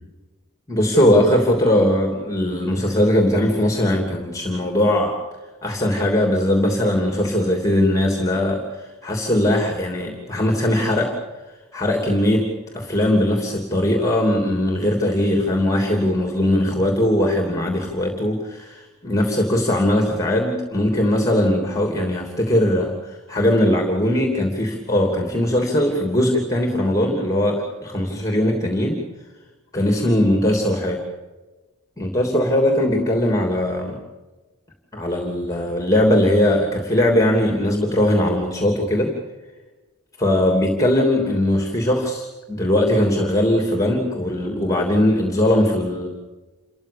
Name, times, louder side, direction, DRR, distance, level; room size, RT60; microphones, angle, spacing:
voice 1, 0.7-5.1 5.6-11.1 11.7-29.0 29.7-31.0 32.0-34.0 34.9-39.1 40.2-46.1, left 1 dB, 15° left, 2 dB, 3.0 m, -20 dB
29.0 x 14.5 x 8.6 m, 1.2 s
head